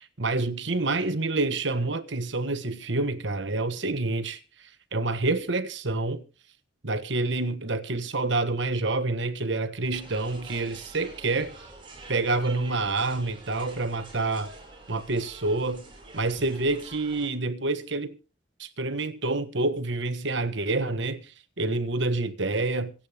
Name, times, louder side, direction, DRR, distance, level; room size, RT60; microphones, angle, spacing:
voice 1, 0.0-6.2 6.8-11.5 12.1-14.5 14.9-15.9 16.1-18.2 18.6-22.9, right 2 dB, 65° right, 1.4 m, -28 dB
sound 1, 9.9-17.3, right 2 dB, 25° right, 6.0 m, -47 dB
26.0 x 8.9 x 3.6 m
head